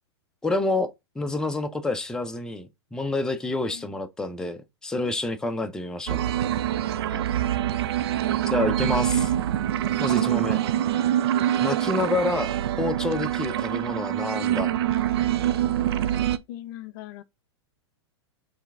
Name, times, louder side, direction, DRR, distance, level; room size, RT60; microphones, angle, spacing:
voice 1, 0.4-6.2 8.5-9.3 10.0-10.6 11.6-14.7, left 2 dB, 5° left, 0.6 m, -28 dB
sound 1, 6.1-16.4, right 11 dB, 65° right, 0.5 m, -25 dB
voice 2, 16.5-17.2, left 12 dB, 45° left, 0.5 m, -40 dB
4.5 x 3.3 x 3.5 m
hypercardioid pair, 115°, 14 cm